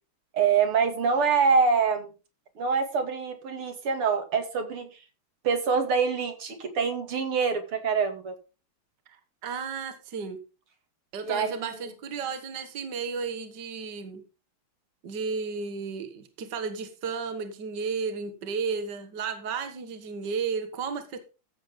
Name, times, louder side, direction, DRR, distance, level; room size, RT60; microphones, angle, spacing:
voice 1, 0.3-2.1 2.6-5.0 5.4-8.4 11.2-11.7, right 5 dB, 85° right, 6 dB, 3.1 m, -25 dB
voice 2, 9.1-10.4 11.1-14.2 15.0-21.2, right 5 dB, 55° right, 8 dB, 2.0 m, -33 dB
14.5 x 7.4 x 3.6 m, 0.31 s
omnidirectional pair, 2.4 m